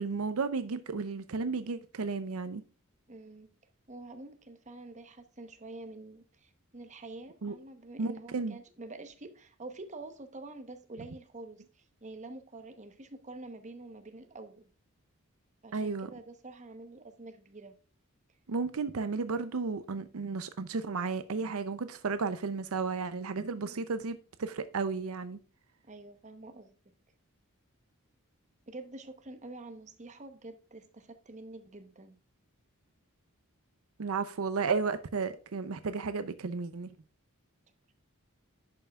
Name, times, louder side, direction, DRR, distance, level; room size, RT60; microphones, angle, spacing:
voice 1, 0.0-2.6 7.4-7.5 8.0-8.6 15.7-16.1 18.5-25.4 34.0-36.9, right 4 dB, 75° right, 0.6 m, -33 dB
voice 2, 3.1-3.6 3.9-14.7 15.6-17.8 23.5-23.8 25.8-26.8 28.7-32.2, right 2 dB, 35° right, 1.0 m, -47 dB
11.0 x 5.6 x 2.4 m
head